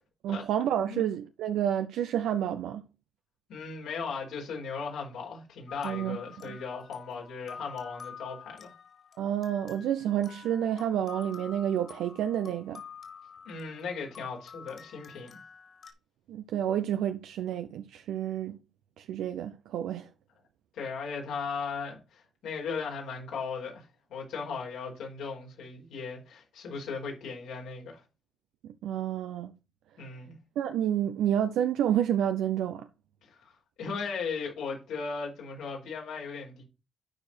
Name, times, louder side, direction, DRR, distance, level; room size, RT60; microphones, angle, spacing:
voice 1, 0.2-2.8 5.8-6.6 9.2-12.8 16.3-18.6 19.0-20.1 28.6-29.5 30.6-32.9, right 10 dB, 85° right, 0.6 m, -29 dB
voice 2, 3.5-8.7 13.4-15.3 20.7-28.0 30.0-30.4 33.2-36.6, left 5 dB, 85° left, 4.6 m, -37 dB
sound 1, 5.7-15.9, left 6 dB, 50° left, 3.0 m, -48 dB
11.5 x 4.8 x 4.4 m
cardioid pair, 90°, 0 cm